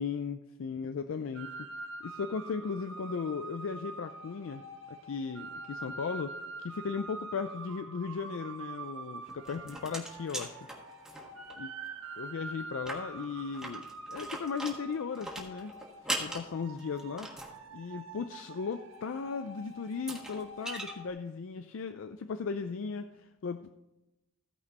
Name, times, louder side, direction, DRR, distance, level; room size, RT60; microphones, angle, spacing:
voice 1, 0.0-1.5 2.0-4.6 4.9-10.6 11.5-11.7 12.2-15.7 16.0-17.3 17.7-23.7, left 5 dB, 65° left, 9 dB, 0.4 m, -37 dB
sound 1, 1.3-21.1, right 3 dB, 70° right, 1.2 m, -45 dB
sound 2, 9.2-11.5 11.9-12.0 12.2-12.3 12.7-17.6 19.3-19.4 19.9-20.9, right 1 dB, 5° right, 1.4 m, -40 dB
16.0 x 5.3 x 4.0 m, 0.98 s
head